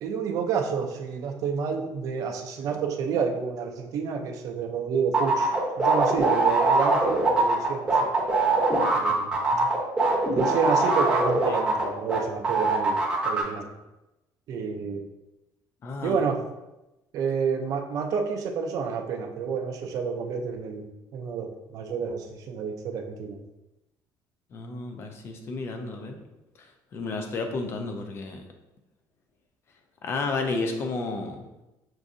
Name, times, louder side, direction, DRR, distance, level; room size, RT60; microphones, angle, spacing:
voice 1, 0.0-8.1 8.9-9.4 10.3-13.0 13.2-13.7 14.5-15.0 16.0-16.5 17.1-20.9 21.1-23.4, right 6 dB, 50° right, 3 dB, 0.5 m, -29 dB
sound 1, 5.1-12.2 12.4-13.4, right 3 dB, 15° right, 0.7 m, -22 dB
voice 2, 15.8-16.2 24.5-26.2 26.9-28.4 30.0-31.5, left 3 dB, 35° left, 5 dB, 0.5 m, -32 dB
6.0 x 2.6 x 2.6 m, 0.98 s
cardioid pair, 170°, 8 cm